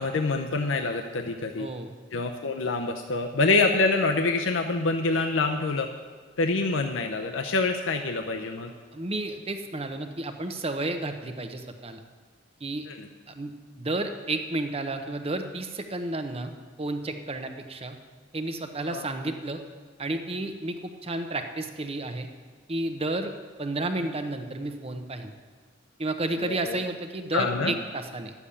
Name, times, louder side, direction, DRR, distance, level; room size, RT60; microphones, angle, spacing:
voice 1, 0.0-1.7 2.1-5.9 6.4-8.7 12.9-13.1 18.9-19.1 26.4-26.8 27.3-27.7, left 3 dB, 75° left, 4 dB, 0.7 m, -26 dB
voice 2, 1.6-1.9 8.9-12.0 12.6-12.9 13.3-13.5 13.8-16.5 16.8-18.0 18.3-19.6 20.0-22.3 22.7-23.3 23.6-25.3 26.0-28.3, right 2 dB, 30° right, 6 dB, 0.9 m, -31 dB
11.5 x 7.1 x 8.5 m, 1.5 s
head